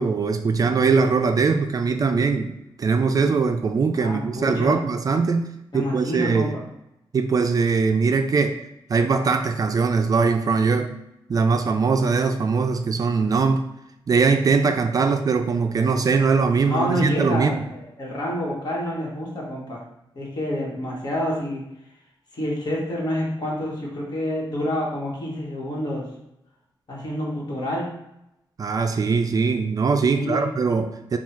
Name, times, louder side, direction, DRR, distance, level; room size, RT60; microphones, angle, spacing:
voice 1, 0.0-5.5 5.7-6.5 7.1-8.6 8.9-11.0 11.3-13.7 14.1-17.7 28.6-31.2, right 4 dB, 45° right, 7 dB, 0.4 m, -21 dB
voice 2, 3.9-4.8 5.7-6.6 16.7-19.8 20.1-21.6 22.3-26.1 26.9-27.9 30.1-30.5, equal, 50° left, -3 dB, 1.4 m, -28 dB
3.6 x 2.4 x 4.4 m, 0.86 s
cardioid pair, 95°, 9 cm